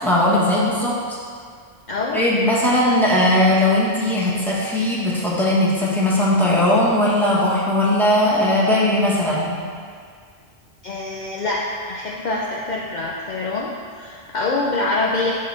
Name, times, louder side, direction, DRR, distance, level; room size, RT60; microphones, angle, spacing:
voice 1, 0.0-1.2 2.1-9.6, left 1 dB, ahead, -7 dB, 1.3 m, -18 dB
voice 2, 1.9-2.3 10.8-15.3, left 2 dB, 50° left, -3 dB, 0.7 m, -25 dB
8.4 x 5.8 x 3.3 m, 2.1 s
omnidirectional pair, 1.0 m